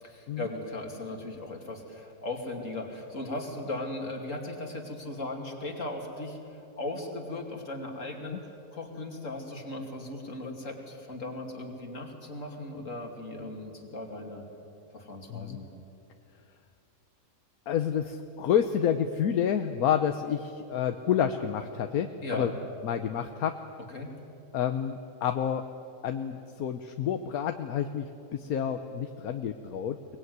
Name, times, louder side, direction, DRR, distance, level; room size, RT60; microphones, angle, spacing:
voice 1, 0.0-14.4 14.9-15.7 22.2-22.6 23.9-24.1, left 2 dB, 55° left, 2 dB, 3.1 m, -37 dB
voice 2, 17.7-22.5 22.8-23.6 24.5-25.7 26.0-30.0, left 8 dB, 80° left, 8 dB, 1.3 m, -29 dB
23.5 x 20.5 x 9.5 m, 2.7 s
omnidirectional pair, 1.6 m